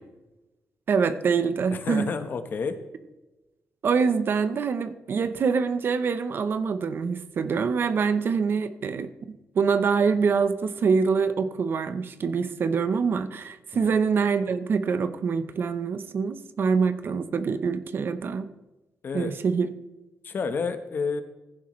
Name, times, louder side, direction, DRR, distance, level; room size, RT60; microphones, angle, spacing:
voice 1, 0.9-2.1 3.8-18.5 19.1-19.7, right 5 dB, 50° right, 11 dB, 0.8 m, -25 dB
voice 2, 1.7-2.8 13.7-13.9 19.0-19.3 20.2-21.2, left 5 dB, 45° left, 9 dB, 1.1 m, -30 dB
15.5 x 11.0 x 3.2 m, 1.1 s
wide cardioid pair, 150°, 5 cm